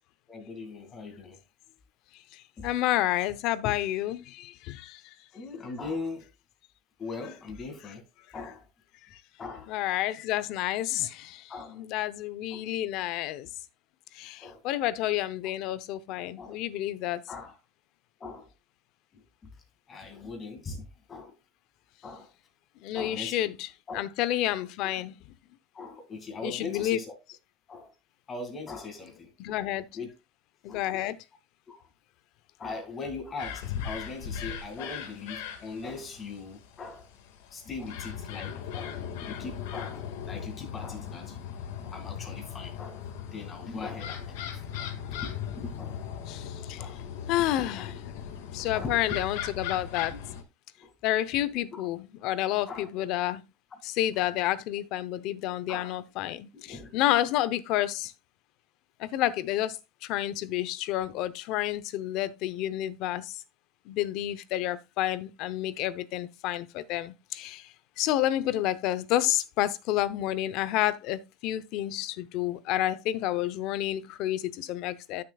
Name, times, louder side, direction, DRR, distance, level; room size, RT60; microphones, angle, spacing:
voice 1, 0.3-1.4 2.6-2.7 5.3-6.3 7.0-8.0 8.3-8.7 9.4-9.7 11.5-11.8 12.5-12.6 14.4-14.6 16.4-16.6 17.3-17.5 18.2-18.5 19.1-19.5 19.9-21.3 22.0-22.3 22.9-23.4 23.9-24.0 24.8-24.9 25.7-27.2 27.7-27.9 28.3-29.3 29.9-30.1 30.7-30.8 31.7-31.8 32.6-37.1 37.5-41.4 41.8-43.0 43.3-44.6 45.1-46.0 46.8-47.0 47.4-47.9 48.7-49.2 50.1-50.2 50.8-50.9 51.7-51.9 52.7-52.9 55.7-56.0 56.5-57.0, left 4 dB, 20° left, 2.2 m, -40 dB
voice 2, 2.3-5.1 9.1-9.2 9.7-13.5 14.1-17.2 22.8-25.1 26.4-27.0 29.4-29.9 30.6-31.2 46.3-46.9 47.3-48.3 48.5-50.2 51.0-53.4 53.8-58.1 59.0-63.4 63.9-75.2, left 13 dB, 50° left, 0.7 m, -30 dB
sound 1, 33.4-50.4, left 8 dB, 80° left, 1.8 m, -38 dB
12.0 x 6.7 x 2.3 m
cardioid pair, 160°, 0 cm